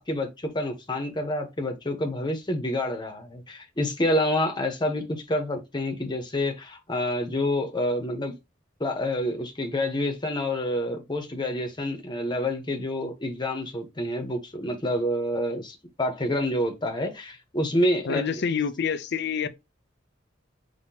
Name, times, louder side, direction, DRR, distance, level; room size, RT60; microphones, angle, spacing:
voice 1, 0.0-8.3 8.8-18.6, left 1 dB, 25° left, 1.1 m, -28 dB
voice 2, 18.1-19.5, left 6 dB, 60° left, 0.5 m, -27 dB
5.8 x 2.9 x 2.8 m
head